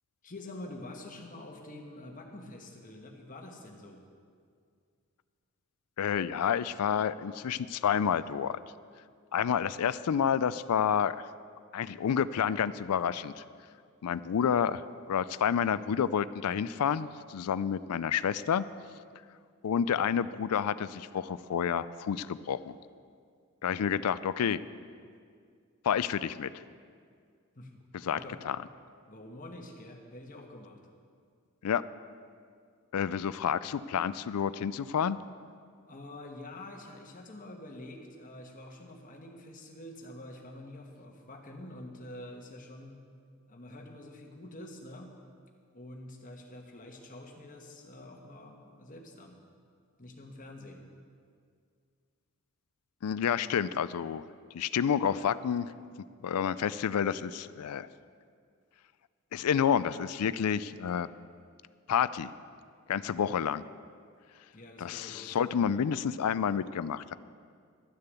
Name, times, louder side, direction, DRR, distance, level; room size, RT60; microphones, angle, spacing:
voice 1, 0.2-4.0 27.5-27.7 28.2-28.4 29.1-30.8 35.9-43.0 43.5-45.1 45.7-49.4 50.0-50.8 64.5-65.4, left 1 dB, 35° left, 3 dB, 1.3 m, -46 dB
voice 2, 6.0-8.6 9.3-11.3 11.7-13.4 14.0-18.7 19.6-22.7 23.6-24.6 25.8-26.5 28.0-28.2 28.5-28.6 31.6-31.8 32.9-35.2 53.0-54.3 54.5-55.7 56.2-57.9 59.3-61.1 61.9-62.3 62.9-63.6 64.8-67.1, left 8 dB, 90° left, 16 dB, 0.4 m, -29 dB
12.5 x 6.7 x 8.2 m, 2.1 s
head